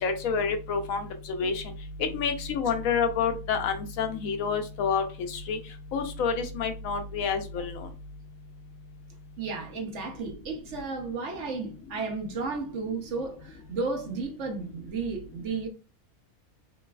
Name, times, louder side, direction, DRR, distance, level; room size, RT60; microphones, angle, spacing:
voice 1, 0.0-1.6 2.1-5.6 5.9-7.9, left 5 dB, 80° left, 1.0 m, -28 dB
voice 2, 9.4-15.7, right 4 dB, 60° right, 1.1 m, -33 dB
3.2 x 3.1 x 2.2 m
omnidirectional pair, 1.4 m